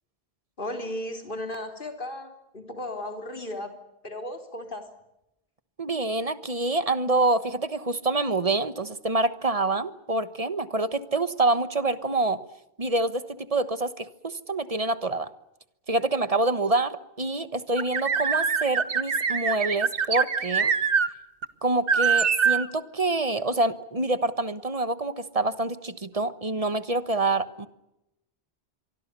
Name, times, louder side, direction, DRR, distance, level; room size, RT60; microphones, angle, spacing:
voice 1, 0.6-3.7 4.0-4.9, left 1 dB, 55° left, 5 dB, 3.9 m, -35 dB
voice 2, 5.8-12.4 12.8-15.3 15.9-20.7 21.6-27.7, right 2 dB, 35° right, 13 dB, 1.3 m, -26 dB
sound 1, 17.8-21.1 21.4-21.5 21.9-22.7, right 6 dB, 60° right, 1.4 m, -24 dB
26.0 x 23.5 x 6.9 m, 0.88 s
omnidirectional pair, 1.1 m